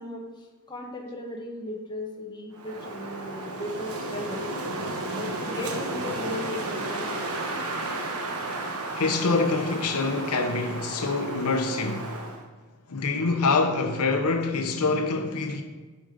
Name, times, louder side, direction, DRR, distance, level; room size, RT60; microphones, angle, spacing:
voice 1, 0.0-4.5 5.1-7.3, left 1 dB, 20° left, 1.2 m, -36 dB
Wind, 2.5-12.4, right 2 dB, 85° right, 1.1 m, -33 dB
voice 2, 9.0-12.2 12.9-15.6, left 3 dB, 85° left, 0.8 m, -25 dB
8.8 x 5.2 x 5.1 m
head